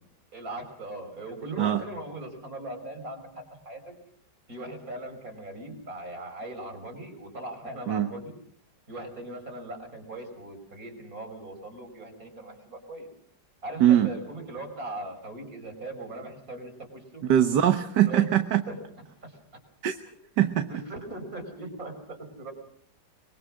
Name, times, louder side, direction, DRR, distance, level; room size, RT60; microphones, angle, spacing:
voice 1, 0.3-3.9 4.5-8.4 8.9-13.1 13.6-17.2 18.0-18.3 18.7-18.8 19.2-19.4 20.1-20.2 20.7-22.5, right 2 dB, 50° right, 5 dB, 5.9 m, -39 dB
voice 2, 17.3-18.6 19.8-20.0 20.4-20.7, right 11 dB, 70° right, 8 dB, 1.7 m, -21 dB
24.0 x 23.0 x 6.3 m, 0.64 s
omnidirectional pair, 1.9 m